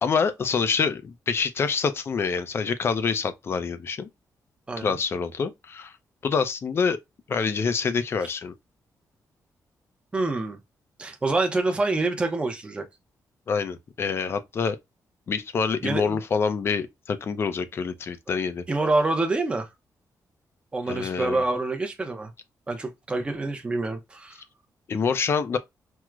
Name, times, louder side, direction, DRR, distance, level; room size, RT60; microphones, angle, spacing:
voice 1, 0.0-4.1 4.8-5.9 6.2-7.0 7.3-8.5 13.5-14.8 15.3-18.6 20.9-21.4 24.9-25.6, left 5 dB, 40° left, 0.4 m, -26 dB
voice 2, 4.7-5.0 10.1-10.6 11.0-12.8 15.8-16.2 18.3-18.4 18.7-19.7 20.7-22.3 22.7-24.4, right 2 dB, 15° right, 0.5 m, -26 dB
4.5 x 2.0 x 2.3 m
wide cardioid pair, 170°, 7 cm